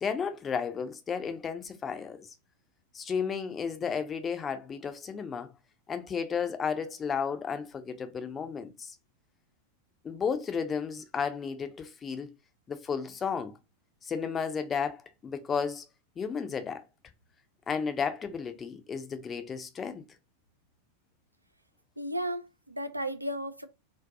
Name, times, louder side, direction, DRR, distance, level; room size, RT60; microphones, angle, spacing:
voice 1, 0.0-2.3 2.9-5.5 5.9-8.9 10.0-12.3 12.7-13.5 14.0-15.8 16.2-16.8 17.7-20.0, left 6 dB, 20° left, 0.4 m, -33 dB
voice 2, 22.0-23.6, equal, 85° right, 0.3 m, -34 dB
2.7 x 2.2 x 2.2 m
figure-of-eight pair, 90°, 0 cm